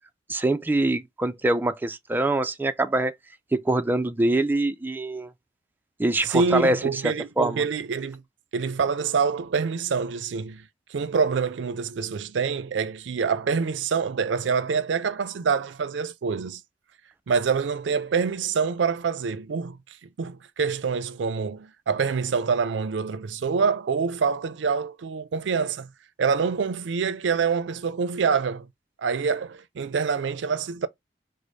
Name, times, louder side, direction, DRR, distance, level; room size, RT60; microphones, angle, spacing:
voice 1, 0.3-3.1 3.5-5.3 6.0-7.6, right 2 dB, 10° right, 0.3 m, -24 dB
voice 2, 6.2-8.2 8.5-10.6 10.9-16.6 17.3-19.8 20.0-25.9 26.2-28.7 29.0-30.9, right 5 dB, 80° right, 0.4 m, -26 dB
4.9 x 2.0 x 3.9 m
head